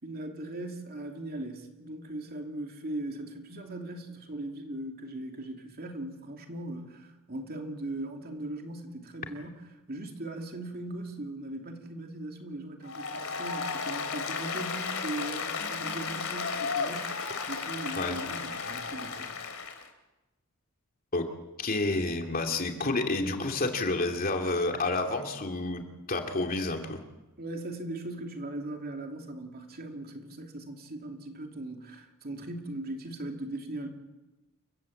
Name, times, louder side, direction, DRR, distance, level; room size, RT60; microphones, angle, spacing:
voice 1, 0.0-19.4 27.4-33.9, right 1 dB, 45° right, 3 dB, 2.9 m, -39 dB
Applause, 12.8-19.9, left 5 dB, 70° left, 3.1 m, -34 dB
voice 2, 21.6-25.8 26.1-27.0, left 2 dB, 45° left, 4 dB, 2.6 m, -29 dB
29.0 x 16.0 x 7.8 m, 1.0 s
head